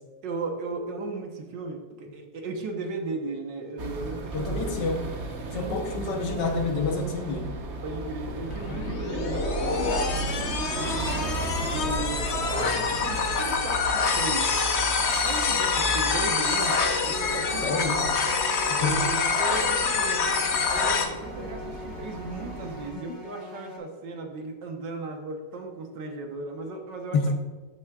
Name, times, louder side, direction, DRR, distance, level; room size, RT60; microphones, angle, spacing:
voice 1, 0.2-4.7 5.4-6.4 7.8-11.3 11.7-14.5 15.2-16.8 17.0-18.0 18.8-20.4 20.7-27.3, right 3 dB, 65° right, 3 dB, 1.6 m, -36 dB
sound 1, 3.8-22.9, right 2 dB, 45° right, 0.9 m, -35 dB
voice 2, 4.3-5.1 5.5-7.6 17.6-18.2 18.7-19.0 20.7-20.8 21.4-21.5 23.1-23.2 27.1-27.3, left 3 dB, 70° left, 4 dB, 1.5 m, -28 dB
sound 2, 8.5-21.1, left 4 dB, 55° left, 0.8 m, -26 dB
sound 3, 16.8-23.8, left 3 dB, 35° left, 1.7 m, -43 dB
12.5 x 6.1 x 2.3 m, 1.4 s
omnidirectional pair, 2.1 m